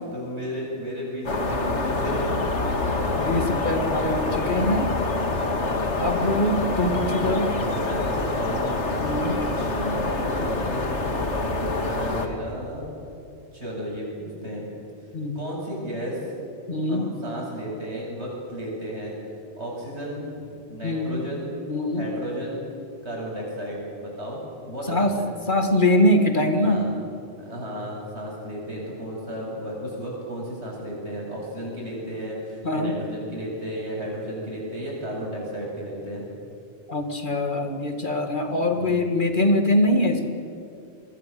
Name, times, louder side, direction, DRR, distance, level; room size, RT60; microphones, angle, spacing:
voice 1, 0.1-2.3 6.1-6.6 7.1-12.9 13.5-14.7 15.3-16.2 16.9-19.1 19.6-20.4 20.7-21.6 21.9-22.6 23.0-24.4 24.6-25.3 26.6-26.9 27.4-36.2 38.7-39.1, equal, 70° right, -3 dB, 8.4 m, -34 dB
sound 1, 1.3-12.3, left 2 dB, 80° left, 2.5 m, -26 dB
voice 2, 3.2-4.9 6.0-7.5 9.0-9.4 15.1-15.4 16.7-17.1 20.8-21.3 21.7-22.1 24.9-25.1 25.5-26.8 32.6-32.9 36.9-40.3, left 1 dB, 45° left, 5 dB, 2.2 m, -23 dB
28.0 x 22.0 x 7.8 m, 2.7 s
omnidirectional pair, 1.2 m